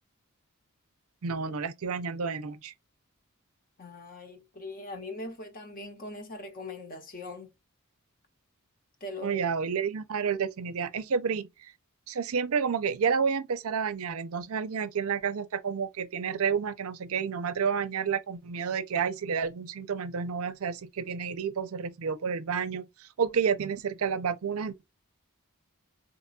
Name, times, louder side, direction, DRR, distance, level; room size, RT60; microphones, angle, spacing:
voice 1, 1.2-2.7 9.2-11.7 12.1-24.8, right 6 dB, 70° right, 0.5 m, -30 dB
voice 2, 3.8-7.5 9.0-9.4, left 2 dB, 40° left, 0.9 m, -41 dB
4.1 x 2.2 x 2.4 m
head